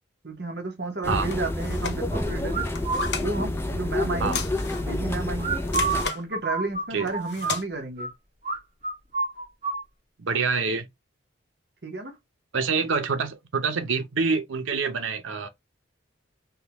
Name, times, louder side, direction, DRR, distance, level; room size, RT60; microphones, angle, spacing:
voice 1, 0.2-2.7 3.1-4.4 4.8-5.6 6.1-8.1 11.8-12.2, right 3 dB, 60° right, 1.1 m, -32 dB
sound 1, 1.0-6.1, left 1 dB, 10° left, 0.4 m, -29 dB
sound 2, 1.3-2.0 2.6-3.3 4.2-4.9 5.7-6.2 7.1-7.6, left 5 dB, 60° left, 0.6 m, -33 dB
sound 3, 2.5-3.1 5.4-8.1 8.4-8.6 8.8-9.8, right 4 dB, 35° right, 1.3 m, -28 dB
voice 2, 10.2-10.9 12.5-15.5, right 5 dB, 85° right, 0.7 m, -26 dB
3.5 x 2.3 x 2.9 m
head